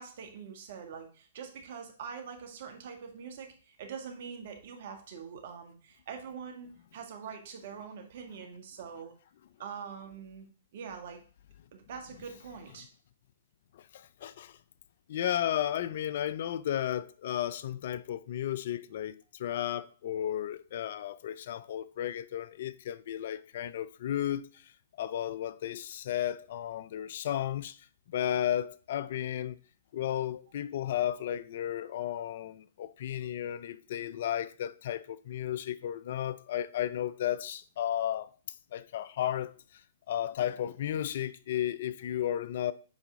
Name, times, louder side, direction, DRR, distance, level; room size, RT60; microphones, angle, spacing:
voice 1, 0.0-9.1 9.6-10.5 10.7-11.2 11.7-12.9, right 6 dB, 55° right, 1.8 m, -44 dB
voice 2, 13.7-14.6 15.1-24.7 25.0-29.6 29.9-38.3 38.7-39.8 40.1-42.7, left 11 dB, 55° left, 0.4 m, -34 dB
7.4 x 4.9 x 3.6 m
hypercardioid pair, 130°, 0 cm